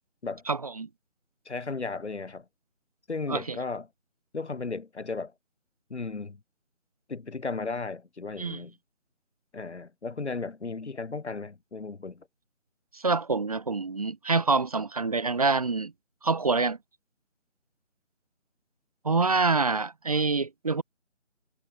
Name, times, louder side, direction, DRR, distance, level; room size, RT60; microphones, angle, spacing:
voice 1, 0.5-0.9 3.3-3.6 8.4-8.6 12.9-15.9 16.2-16.8 19.0-20.8, right 4 dB, 30° right, 1.4 m, -26 dB
voice 2, 1.5-2.4 3.1-3.9 4.3-5.3 5.9-6.4 7.1-8.7 9.5-12.3, left 4 dB, 60° left, 2.3 m, -35 dB
figure-of-eight pair, 165°, 38 cm